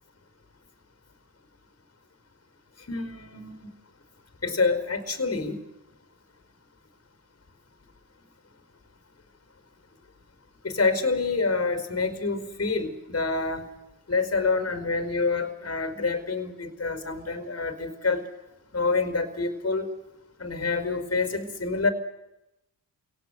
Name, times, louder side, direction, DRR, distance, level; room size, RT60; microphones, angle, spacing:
voice 1, 2.9-3.7 4.4-5.6 10.6-13.7 14.1-18.2 18.7-19.9 20.4-21.9, left 4 dB, 35° left, 9 dB, 4.8 m, -27 dB
27.5 x 18.0 x 8.2 m, 0.93 s
supercardioid pair, 45°, 44 cm